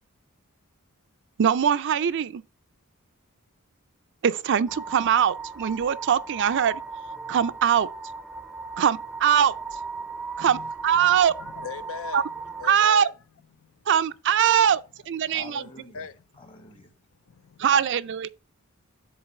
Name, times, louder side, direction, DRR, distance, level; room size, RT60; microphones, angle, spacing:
voice 1, 1.4-2.4 4.2-6.8 7.3-7.9 8.8-9.6 10.4-10.6 10.8-11.3 12.1-12.2 12.6-13.1 13.9-15.6 17.6-18.3, right 8 dB, 55° right, 0.4 m, -22 dB
sound 1, 4.7-12.7, right 4 dB, 5° right, 0.5 m, -37 dB
voice 2, 10.5-13.1 13.6-13.7 15.2-15.4 15.9-16.5 17.3-17.6, left 5 dB, 65° left, 0.5 m, -41 dB
voice 3, 15.3-16.1 16.3-16.9, left 3 dB, 25° left, 1.1 m, -46 dB
7.2 x 3.8 x 6.4 m
head